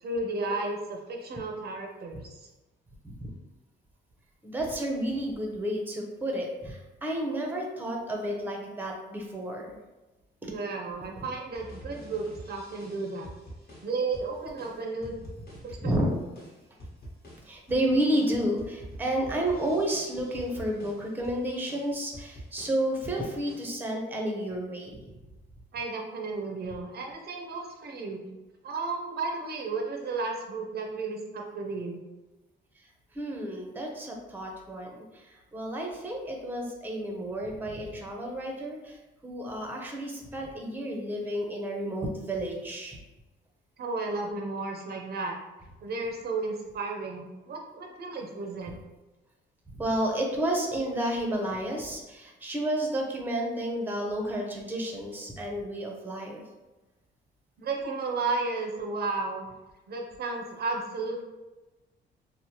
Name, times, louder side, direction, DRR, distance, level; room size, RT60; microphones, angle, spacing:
voice 1, 0.0-2.5 10.4-13.3 13.8-15.1 15.6-16.2 25.7-28.3 28.6-32.0 43.8-45.4 45.8-48.7 57.6-59.5 59.9-61.2, right 3 dB, 55° right, 2 dB, 0.5 m, -33 dB
voice 2, 4.4-9.7 10.4-10.5 15.8-16.2 17.4-25.0 32.8-32.9 33.1-39.0 39.2-43.0 49.7-56.4, right 1 dB, 10° right, 0 dB, 0.6 m, -31 dB
sound 1, 11.5-23.6, equal, 55° left, 1.1 m, -47 dB
3.0 x 2.0 x 2.8 m, 1.1 s
cardioid pair, 90°, 20 cm